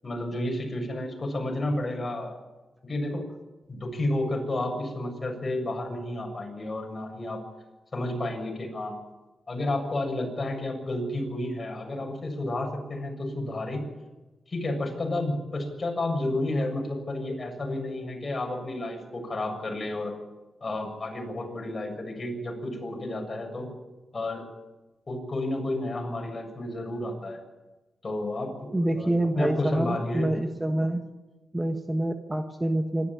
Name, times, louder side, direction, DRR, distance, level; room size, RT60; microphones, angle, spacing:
voice 1, 0.0-2.4 2.8-3.2 3.7-7.4 7.9-8.9 9.5-13.8 14.5-20.2 20.6-23.7 24.1-24.5 25.1-27.4 28.0-30.3, left 1 dB, 35° left, 1 dB, 7.3 m, -31 dB
voice 2, 28.7-31.1 31.5-33.1, right 1 dB, 15° right, 5 dB, 1.4 m, -26 dB
26.0 x 13.0 x 9.9 m, 1.1 s
wide cardioid pair, 110°, 0 cm